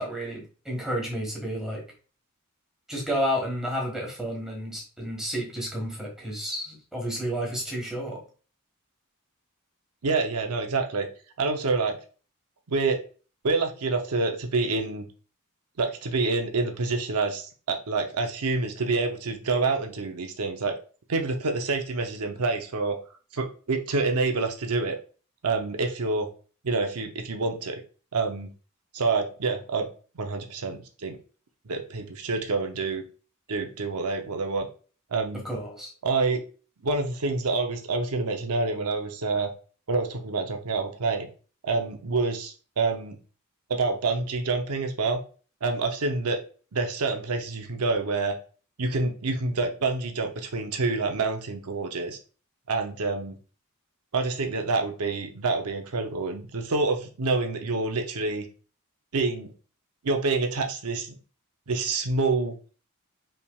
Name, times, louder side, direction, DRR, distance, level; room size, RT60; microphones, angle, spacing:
voice 1, 0.0-1.8 2.9-8.2 35.4-35.9, equal, ahead, -2 dB, 1.6 m, -31 dB
voice 2, 10.0-11.1 11.4-12.0 12.7-13.0 13.4-15.1 15.8-20.8 21.1-23.0 23.3-25.0 25.4-26.3 26.6-27.8 28.1-28.5 28.9-29.9 30.2-31.2 31.7-33.0 33.5-34.7 35.1-35.5 36.0-36.4 36.8-39.5 39.9-41.3 41.6-43.2 43.7-45.2 45.6-46.4 46.7-48.4 48.8-52.2 52.7-53.3 54.1-58.5 59.1-59.5 60.0-61.2 61.7-62.5, right 3 dB, 85° right, 5 dB, 0.7 m, -27 dB
5.6 x 3.4 x 2.3 m, 0.37 s
head